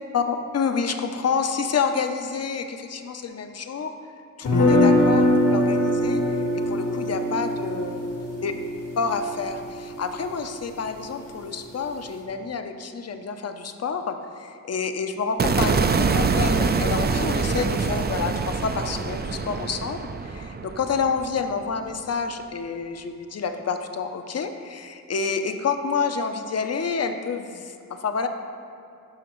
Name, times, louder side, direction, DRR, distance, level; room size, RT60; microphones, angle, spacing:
voice 1, 0.1-3.9 4.4-8.0 8.4-8.5 9.0-28.3, left 5 dB, 50° left, 7 dB, 0.6 m, -28 dB
sound 1, 4.4-10.4, left 1 dB, 75° left, 1.5 m, -22 dB
sound 2, 15.4-21.6, right 4 dB, 30° right, 0.4 m, -25 dB
11.5 x 5.7 x 3.1 m, 2.5 s
wide cardioid pair, 80°, 32 cm